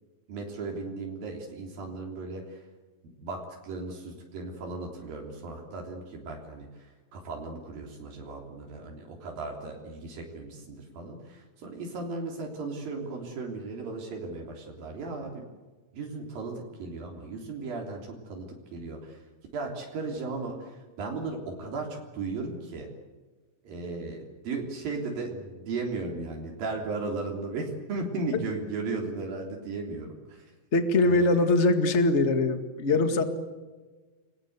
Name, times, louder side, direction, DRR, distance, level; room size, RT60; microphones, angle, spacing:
voice 1, 0.3-2.6 3.2-15.4 15.9-19.2 19.5-22.9 23.6-30.5 31.1-31.4 32.9-33.3, right 3 dB, 80° right, 0 dB, 5.2 m, -36 dB
voice 2, 30.7-33.2, left 2 dB, 25° left, 8 dB, 1.6 m, -22 dB
29.5 x 22.0 x 8.1 m, 1.3 s
omnidirectional pair, 4.0 m